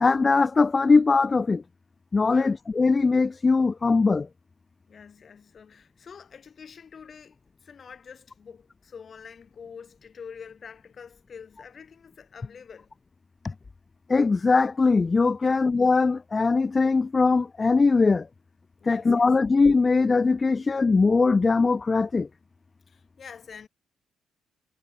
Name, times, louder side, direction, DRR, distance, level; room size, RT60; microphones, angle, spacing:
voice 1, 0.0-1.6 2.1-4.3 14.1-18.2 18.9-22.3, left 4 dB, 30° left, 0.4 m, -21 dB
voice 2, 2.3-2.6 4.9-12.9 15.4-15.7 18.8-19.5 22.9-23.7, left 6 dB, 45° left, 3.5 m, -46 dB
cardioid pair, 90°, 0 cm